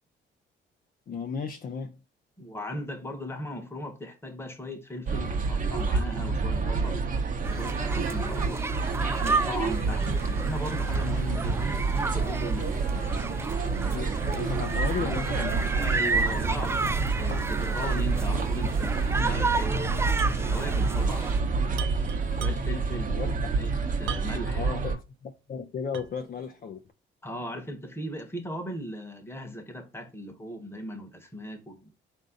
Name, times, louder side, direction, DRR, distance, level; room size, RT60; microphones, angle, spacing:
voice 1, 1.1-2.0 13.9-15.7 21.5-21.6 23.1-23.3 24.5-26.8, left 6 dB, 45° left, 0.6 m, -35 dB
voice 2, 2.4-7.1 7.6-8.6 9.1-12.7 15.6-19.9 20.5-21.3 22.4-23.2 23.5-23.7 24.0-24.7 27.2-31.9, equal, 10° left, 1.1 m, -38 dB
sound 1, 5.1-25.0, right 4 dB, 40° right, 0.9 m, -28 dB
sound 2, 7.4-21.4, right 3 dB, 15° right, 0.3 m, -32 dB
sound 3, 20.2-20.4 20.7-20.8 21.7-22.9 24.1-24.6 25.1-25.2 25.9-26.3, right 10 dB, 85° right, 0.5 m, -39 dB
3.8 x 2.7 x 3.7 m
cardioid pair, 90°, 20 cm